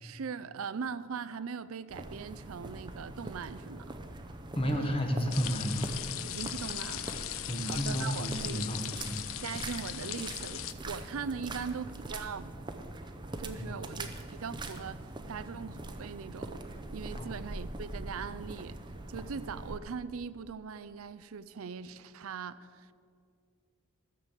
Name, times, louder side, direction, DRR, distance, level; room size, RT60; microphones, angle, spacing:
voice 1, 0.0-3.9 4.7-5.0 6.2-8.7 9.4-12.5 13.4-18.8 19.1-22.9, right 6 dB, 75° right, 15 dB, 0.4 m, -40 dB
sound 1, 1.9-19.8, right 2 dB, 20° right, 0.6 m, -43 dB
voice 2, 4.5-5.9 7.4-9.2 13.6-13.7 17.2-17.3, equal, 25° left, 3 dB, 1.3 m, -32 dB
sound 2, 5.3-10.7, left 13 dB, 70° left, 0.5 m, -39 dB
14.5 x 6.8 x 7.4 m, 2.3 s
head